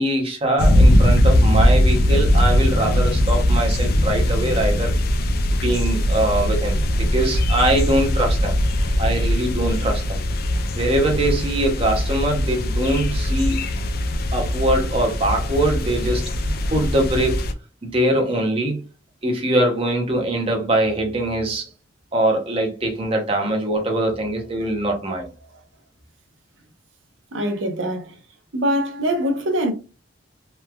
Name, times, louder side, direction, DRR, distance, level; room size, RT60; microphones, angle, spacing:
voice 1, 0.0-5.0 5.5-8.6 9.0-10.2 10.8-13.6 14.3-16.3 16.7-17.4 17.8-18.8 19.2-21.7 22.1-25.3, right 1 dB, 30° right, 0.7 m, -22 dB
sound 1, 0.6-17.5, left 1 dB, 50° left, 0.4 m, -20 dB
voice 2, 27.3-28.2 28.5-29.7, equal, 70° right, 0.7 m, -23 dB
3.1 x 2.2 x 2.2 m
head